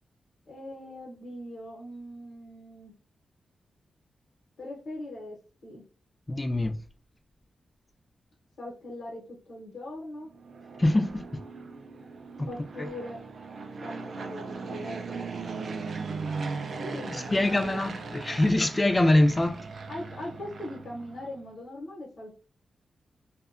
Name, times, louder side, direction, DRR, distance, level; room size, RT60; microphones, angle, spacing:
voice 1, 0.5-2.9 4.6-5.8 8.6-10.3 12.5-13.2 13.8-15.2 16.7-18.7 19.9-22.4, left 1 dB, 75° left, 0.8 m, -41 dB
voice 2, 6.3-6.8 10.8-11.2 12.4-12.5 17.1-19.6, left 1 dB, 20° left, 0.3 m, -24 dB
Fixed-wing aircraft airplane, 10.3-21.4, right 4 dB, 65° right, 0.3 m, -38 dB
2.6 x 2.1 x 2.4 m
wide cardioid pair, 110°, 0 cm